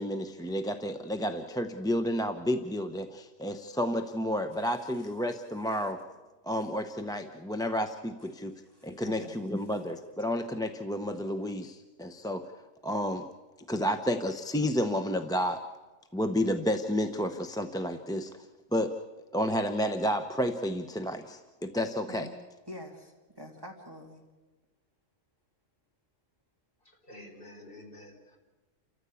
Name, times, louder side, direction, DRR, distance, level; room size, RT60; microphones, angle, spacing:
voice 1, 0.0-6.0 6.4-8.5 8.8-12.4 12.8-13.3 13.7-15.6 16.1-18.3 18.7-18.9 19.3-22.3, equal, 5° left, 7 dB, 0.7 m, -31 dB
voice 2, 4.6-5.3 5.6-5.9 6.6-6.7 8.3-8.4 8.7-9.4 22.1-22.3 22.7-24.2, equal, 15° right, 1 dB, 2.5 m, -47 dB
voice 3, 26.8-28.4, left 1 dB, 40° left, 1 dB, 4.4 m, -49 dB
29.5 x 14.0 x 8.5 m, 1.2 s
omnidirectional pair, 1.4 m